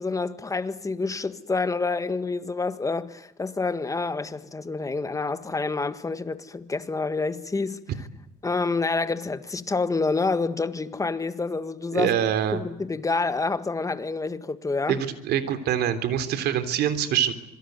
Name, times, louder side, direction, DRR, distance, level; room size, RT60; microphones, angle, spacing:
voice 1, 0.0-7.8 8.4-12.2 12.5-15.0, left 3 dB, 20° left, 1.7 m, -28 dB
voice 2, 11.9-12.6 14.9-17.3, right 9 dB, 75° right, 3.5 m, -25 dB
26.0 x 23.0 x 9.5 m
cardioid pair, 110°, 17 cm